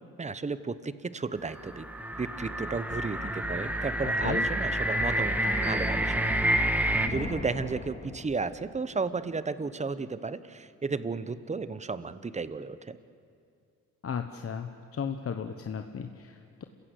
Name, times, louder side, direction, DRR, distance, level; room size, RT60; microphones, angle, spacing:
voice 1, 0.2-1.9 2.2-6.3 7.0-13.0, right 4 dB, 20° right, 14 dB, 0.9 m, -33 dB
sound 1, 1.5-7.1, right 1 dB, 5° right, 1.5 m, -28 dB
voice 2, 4.0-4.5 14.0-16.6, left 7 dB, 45° left, 6 dB, 1.1 m, -35 dB
Thunder, 6.7-9.0, left 3 dB, 25° left, 2.4 m, -40 dB
28.0 x 16.0 x 8.2 m, 2.4 s
cardioid pair, 85°, 32 cm